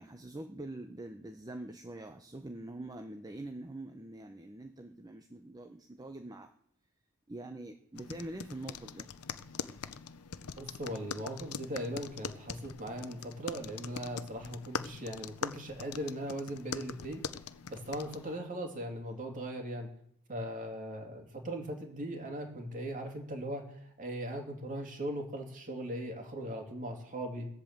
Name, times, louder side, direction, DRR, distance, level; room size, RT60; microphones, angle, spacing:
voice 1, 0.0-6.5 7.3-9.1, right 1 dB, 15° right, 5 dB, 0.8 m, -44 dB
sound 1, 8.0-18.4, left 6 dB, 80° left, 0.7 m, -43 dB
voice 2, 10.6-17.2 17.7-19.9 20.3-27.5, right 1 dB, 35° right, 3 dB, 2.8 m, -39 dB
18.5 x 8.2 x 7.4 m, 0.70 s
head